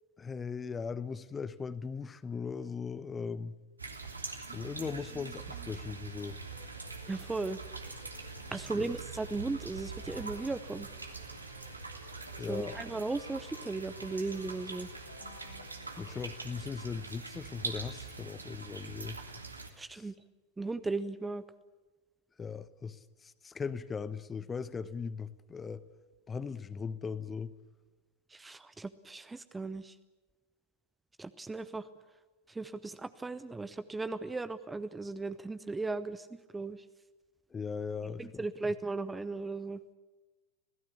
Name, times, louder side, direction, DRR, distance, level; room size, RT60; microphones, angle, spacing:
voice 1, 0.2-3.6 4.5-6.4 8.7-8.9 12.4-12.8 16.0-19.2 22.4-25.8 26.3-27.5 37.5-38.4, left 5 dB, 15° left, 15 dB, 1.0 m, -39 dB
sound 1, 3.8-19.7, right 3 dB, 80° right, 2.8 m, -44 dB
sound 2, 4.5-6.1 6.9-11.8, right 9 dB, 55° right, 7.2 m, -56 dB
Keyboard (musical), 6.1-16.7, left 8 dB, 60° left, 1.5 m, -56 dB
voice 2, 7.1-7.6 8.5-10.9 12.5-14.9 19.8-20.1 20.6-21.4 28.3-30.0 31.2-31.9 32.5-36.9 38.2-39.8, right 3 dB, 10° right, 13 dB, 0.8 m, -37 dB
26.5 x 17.0 x 8.4 m, 1.3 s
figure-of-eight pair, 90°, 0 cm